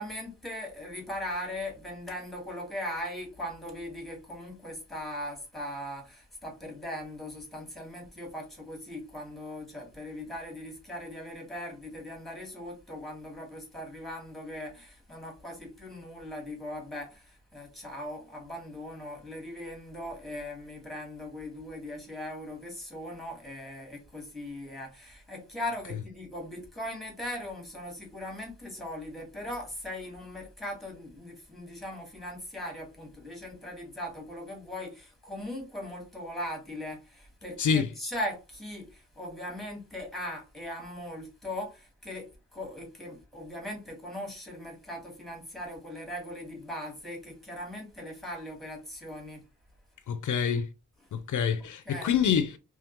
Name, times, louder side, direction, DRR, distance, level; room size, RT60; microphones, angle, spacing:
voice 1, 0.0-49.4 51.8-52.2, left 1 dB, ahead, 1.6 m, -39 dB
voice 2, 37.6-37.9 50.1-50.7 51.1-52.6, left 7 dB, 70° left, 0.5 m, -26 dB
3.5 x 3.2 x 3.0 m
wide cardioid pair, 165°, 31 cm